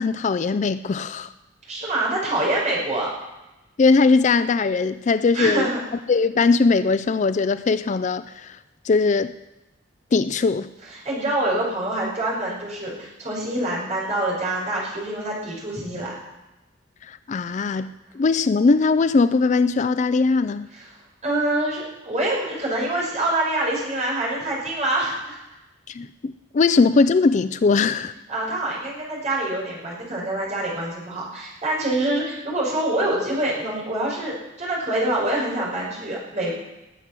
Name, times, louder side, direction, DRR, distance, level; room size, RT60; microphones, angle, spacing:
voice 1, 0.0-1.3 3.8-5.7 6.1-8.6 8.8-9.3 10.1-10.7 17.1-20.7 25.9-28.1, left 4 dB, 40° left, 13 dB, 0.4 m, -20 dB
voice 2, 1.7-3.1 5.3-5.8 10.9-16.1 20.7-20.9 21.2-25.4 28.3-36.5, right 1 dB, 40° right, -4 dB, 6.0 m, -25 dB
19.5 x 8.2 x 6.1 m, 1.0 s
head